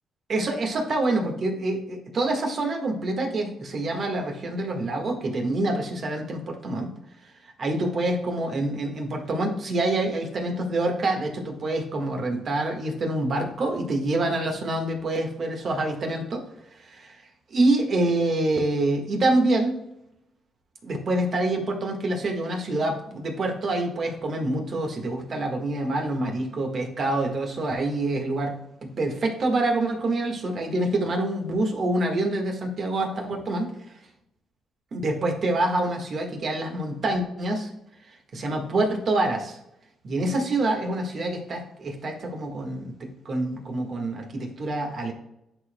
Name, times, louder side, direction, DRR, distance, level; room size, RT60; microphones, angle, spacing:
voice 1, 0.3-6.9 7.6-16.4 16.8-17.2 17.5-19.8 20.8-33.7 34.9-37.7 38.3-39.6 40.0-45.1, right 2 dB, 50° right, 2 dB, 1.6 m, -26 dB
11.0 x 4.3 x 2.2 m, 0.84 s
cardioid pair, 90°, 0 cm